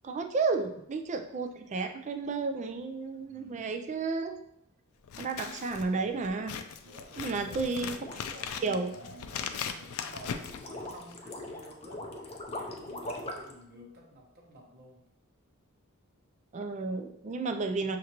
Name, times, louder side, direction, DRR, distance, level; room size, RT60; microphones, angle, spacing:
voice 1, 0.0-4.4 5.2-6.6 7.2-8.0 8.6-8.9 16.5-18.0, right 4 dB, 35° right, 6 dB, 0.3 m, -32 dB
voice 2, 3.2-3.7 6.8-15.0, right 1 dB, 50° right, -1 dB, 1.0 m, -51 dB
Scissors, 5.0-11.3, left 7 dB, 85° left, 0.4 m, -39 dB
sound 1, 7.7-13.6, left 1 dB, 25° left, 0.5 m, -41 dB
6.3 x 2.6 x 2.9 m, 0.76 s
head